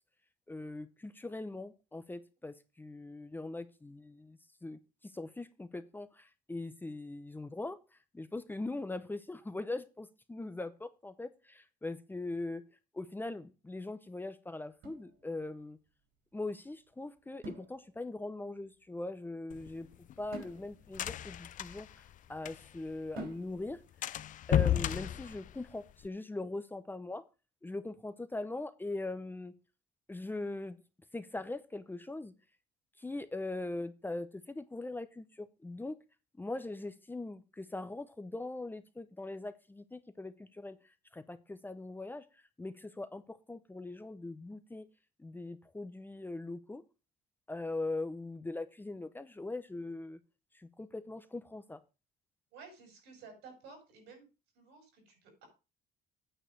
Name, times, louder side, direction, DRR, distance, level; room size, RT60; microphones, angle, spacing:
voice 1, 0.5-7.8 8.1-12.6 12.9-15.8 16.3-19.9 20.2-21.9 22.3-23.8 24.5-27.2 27.6-29.5 30.1-30.8 31.1-32.3 33.0-36.0 36.4-40.8 41.1-42.2 42.6-44.9 45.2-46.8 47.5-50.2 50.5-51.8, left 2 dB, 10° left, 11 dB, 0.7 m, -41 dB
sound 1, 14.8-15.8 17.4-18.3 20.3-22.3 23.2-23.9, right 1 dB, 70° right, 3.5 m, -49 dB
sound 2, 19.5-22.9 23.2-23.3 23.6-23.7 24.0-26.1, left 11 dB, 50° left, 0.5 m, -33 dB
voice 2, 52.5-54.3 54.5-55.5, right 4 dB, 90° right, 3 dB, 6.0 m, -53 dB
8.9 x 4.8 x 6.7 m, 0.30 s
cardioid pair, 110°, 17 cm